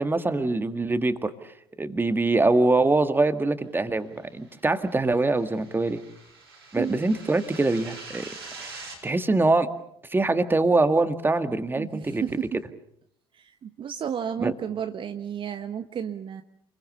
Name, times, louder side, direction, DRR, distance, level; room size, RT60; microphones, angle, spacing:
voice 1, 0.0-1.3 1.8-6.0 6.7-8.3 8.6-9.7 10.1-12.2 14.4-14.5, right 2 dB, 15° right, 9 dB, 2.0 m, -23 dB
sound 1, 4.5-9.0, right 3 dB, 90° right, 5.0 m, -44 dB
voice 2, 11.8-12.6 13.3-16.4, right 8 dB, 45° right, 8 dB, 1.2 m, -32 dB
28.5 x 22.0 x 6.9 m, 0.70 s
figure-of-eight pair, 55°, 13 cm